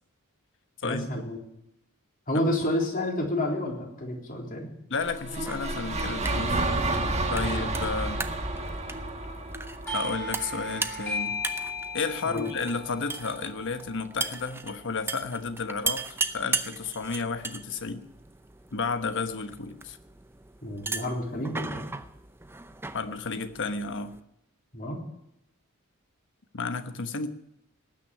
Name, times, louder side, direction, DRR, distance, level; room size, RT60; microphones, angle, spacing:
voice 1, 0.8-1.4 2.3-4.7 7.4-7.7 12.3-12.5 20.6-21.9 24.7-25.0, left 1 dB, 40° left, -1 dB, 3.6 m, -30 dB
voice 2, 4.9-6.6 7.3-8.2 9.9-11.4 11.9-18.0 18.7-20.0 22.9-24.1 26.5-27.3, left 4 dB, 60° left, 9 dB, 1.1 m, -32 dB
sound 1, 5.0-11.2, right 2 dB, 30° right, 1.7 m, -30 dB
sound 2, 5.3-24.2, right 4 dB, 10° right, 0.6 m, -38 dB
Doorbell, 9.9-15.1, left 2 dB, 10° left, 3.5 m, -37 dB
18.5 x 6.3 x 9.7 m, 0.81 s
head